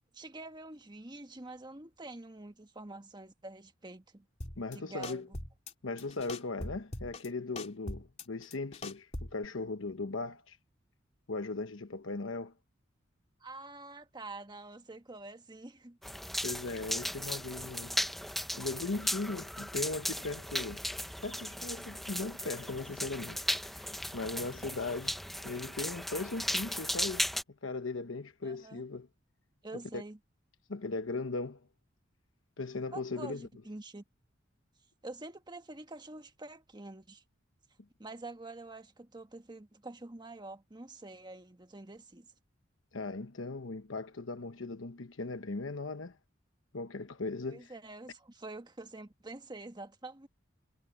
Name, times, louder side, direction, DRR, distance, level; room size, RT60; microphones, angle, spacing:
voice 1, 0.1-4.2 4.7-5.3 13.4-16.0 28.4-28.8 29.6-30.2 32.9-34.0 35.0-37.2 38.0-42.3 47.5-50.3, right 2 dB, 20° right, 1.4 m, -47 dB
sound 1, 4.4-4.8 5.0-5.7 6.0-7.3 7.6-9.5, left 1 dB, 35° left, 2.7 m, -42 dB
voice 2, 4.6-5.3 5.8-10.6 11.3-12.5 16.4-18.0 18.6-20.8 21.2-27.3 27.6-29.1 29.9-30.0 30.7-31.7 32.6-33.5 42.9-46.2 46.7-47.7, left 3 dB, 80° left, 1.0 m, -38 dB
sound 2, 16.0-27.4, equal, ahead, 0.8 m, -36 dB
head